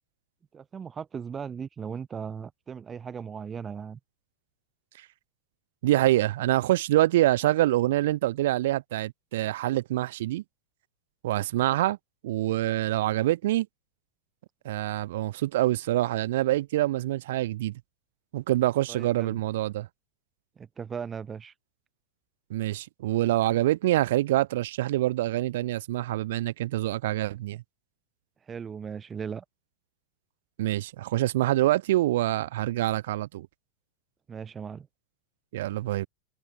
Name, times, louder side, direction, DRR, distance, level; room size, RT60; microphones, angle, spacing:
voice 1, 0.5-4.0 18.9-19.4 20.6-21.5 28.4-29.4 34.3-34.9, right 7 dB, 20° right, 1.2 m, -37 dB
voice 2, 5.8-10.4 11.2-12.0 12.2-13.7 14.6-17.7 18.3-19.9 22.5-27.6 30.6-33.5 35.5-36.1, right 15 dB, 55° right, 1.5 m, -25 dB
figure-of-eight pair, 90°, 0 cm